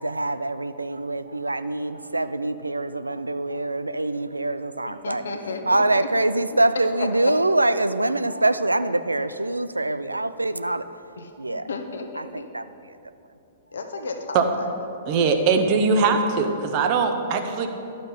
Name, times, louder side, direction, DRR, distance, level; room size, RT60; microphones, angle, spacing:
voice 1, 0.0-5.2 5.7-10.8 11.4-11.7 12.2-12.6, right 2 dB, 85° right, 12 dB, 0.3 m, -24 dB
voice 2, 4.8-6.1 7.0-7.1 11.2-11.3 11.7-12.4 13.7-14.7, left 3 dB, 65° left, 5 dB, 1.0 m, -33 dB
voice 3, 15.1-17.7, right 4 dB, 35° right, 5 dB, 0.9 m, -21 dB
11.5 x 6.4 x 5.4 m, 2.8 s
figure-of-eight pair, 110°, 0 cm